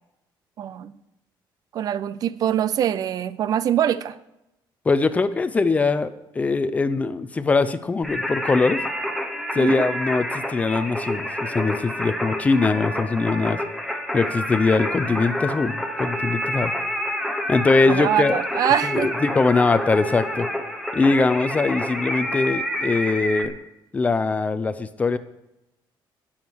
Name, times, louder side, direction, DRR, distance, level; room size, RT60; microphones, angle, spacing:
voice 1, 0.6-0.9 1.7-4.2 9.6-9.9 17.9-19.1, right 10 dB, 45° right, 16 dB, 0.5 m, -23 dB
voice 2, 4.9-8.8 9.5-13.6 14.1-16.7 17.5-18.4 18.8-20.5 20.9-23.5 23.9-25.2, left 3 dB, 15° left, 13 dB, 0.6 m, -22 dB
Singing, 8.0-23.4, left 1 dB, ahead, 1.0 m, -28 dB
19.0 x 7.3 x 4.6 m, 0.90 s
cardioid pair, 175°, 9 cm